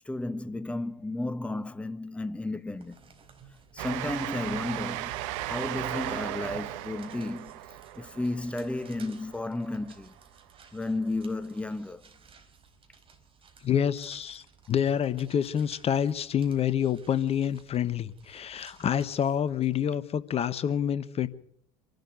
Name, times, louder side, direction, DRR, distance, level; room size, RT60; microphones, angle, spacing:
voice 1, 0.0-3.0 3.7-10.2 10.7-12.1, left 2 dB, 5° left, 1.1 m, -33 dB
sound 1, 2.5-19.8, right 5 dB, 30° right, 4.4 m, -57 dB
Train, 3.8-9.9, right 14 dB, 60° right, 1.0 m, -36 dB
voice 2, 13.6-21.3, left 9 dB, 35° left, 1.2 m, -27 dB
26.0 x 12.0 x 9.6 m
figure-of-eight pair, 70°, 18 cm